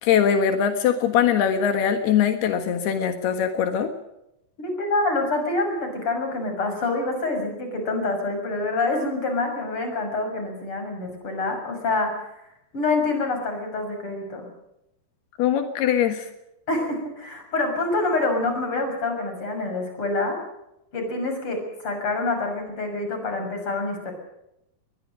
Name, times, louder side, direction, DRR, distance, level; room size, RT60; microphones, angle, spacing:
voice 1, 0.0-3.9 15.4-16.3, left 8 dB, 85° left, 7 dB, 3.6 m, -21 dB
voice 2, 4.6-12.3 12.7-14.5 16.7-20.4 20.9-24.1, left 2 dB, 35° left, 5 dB, 7.0 m, -26 dB
22.5 x 21.0 x 6.5 m, 0.84 s
omnidirectional pair, 4.5 m